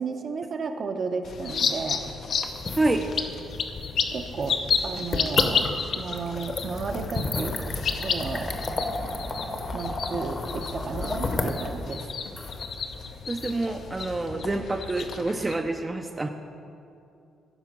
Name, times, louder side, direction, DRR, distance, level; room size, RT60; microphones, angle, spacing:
voice 1, 0.0-2.0 4.1-4.6 4.8-7.6 8.0-8.5 9.7-12.0, right 4 dB, 50° right, 5 dB, 0.8 m, -33 dB
sound 1, 1.2-15.5, left 6 dB, 60° left, 0.7 m, -32 dB
sound 2, 2.5-14.3, left 2 dB, 35° left, 0.9 m, -33 dB
voice 2, 13.3-16.3, right 2 dB, 20° right, 5 dB, 0.5 m, -27 dB
14.0 x 5.0 x 6.0 m, 2.6 s
cardioid pair, 90°, 0 cm